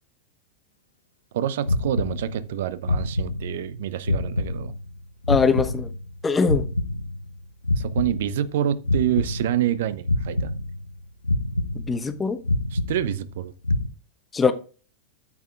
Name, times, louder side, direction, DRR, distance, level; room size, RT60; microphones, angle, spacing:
voice 1, 1.3-4.7 7.8-10.5 12.7-13.5, right 11 dB, 55° right, 0.6 m, -27 dB
sound 1, 1.6-2.6 2.8-3.8 4.0-6.2 6.4-8.6 8.8-9.8 10.0-11.0 11.2-12.2 12.4-13.4 13.6-13.9, left 2 dB, 85° left, 0.6 m, -26 dB
voice 2, 5.3-5.9 6.2-6.7 11.9-12.4 14.3-14.5, left 5 dB, 15° left, 0.9 m, -21 dB
14.0 x 8.5 x 2.4 m
figure-of-eight pair, 90°, 0 cm